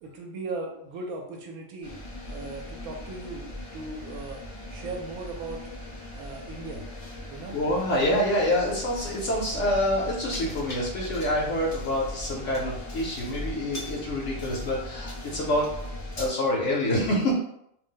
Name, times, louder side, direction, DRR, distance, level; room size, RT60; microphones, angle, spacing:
voice 1, 0.0-1.9 2.3-3.5 3.7-4.4 4.7-5.6 6.1-6.8 7.3-7.6, right 3 dB, 80° right, 1 dB, 1.0 m, -37 dB
sound 1, 1.8-16.3, left 1 dB, 40° left, 0.5 m, -39 dB
voice 2, 7.5-15.7 16.2-17.3, left 1 dB, 65° left, -3 dB, 0.9 m, -26 dB
2.6 x 2.1 x 3.7 m, 0.74 s
omnidirectional pair, 1.5 m